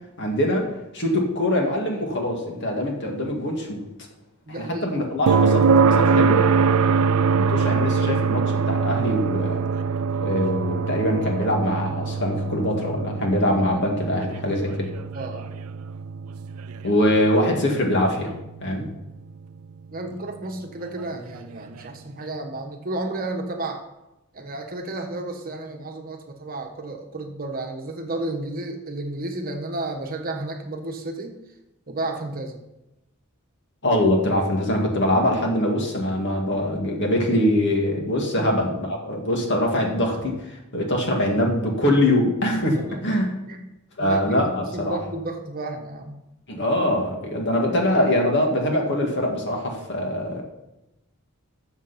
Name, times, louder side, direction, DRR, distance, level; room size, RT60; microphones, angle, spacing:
voice 1, 0.2-0.7 0.9-3.8 4.5-9.6 10.2-14.9 16.8-18.3 18.6-18.9 33.8-42.8 43.0-43.2 44.0-45.0 46.5-50.4, left 1 dB, 55° left, 0 dB, 2.2 m, -23 dB
voice 2, 4.5-4.9 15.1-15.5 19.9-23.8 24.3-31.4 31.9-32.6 37.9-38.0 38.4-38.5 42.7-43.1 43.5-43.6 44.0-46.2, right 2 dB, 45° right, 3 dB, 1.3 m, -32 dB
sound 1, 5.3-19.1 21.4-21.5, right 5 dB, 80° right, 0.4 m, -23 dB
13.5 x 7.2 x 4.3 m, 0.94 s
head